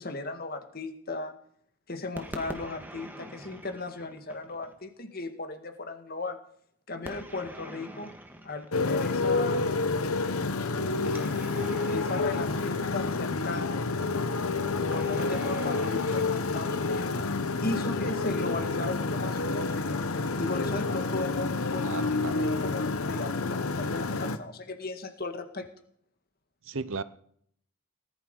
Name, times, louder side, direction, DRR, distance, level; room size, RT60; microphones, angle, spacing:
voice 1, 0.0-1.3 1.9-6.4 6.9-8.1 8.4-9.7 11.0-11.6 11.9-13.9 14.9-17.1 17.6-20.0 20.4-25.7, left 2 dB, 45° left, 7 dB, 2.0 m, -36 dB
sound 1, 2.2-4.8 7.0-9.4 11.1-13.5 14.9-17.3, right 1 dB, 10° right, 1.7 m, -45 dB
Motorcycle, 8.7-24.4, left 3 dB, 90° left, 1.1 m, -29 dB
voice 2, 21.8-22.5 26.6-27.0, right 4 dB, 65° right, 15 dB, 0.8 m, -35 dB
19.0 x 11.5 x 5.5 m, 0.65 s
head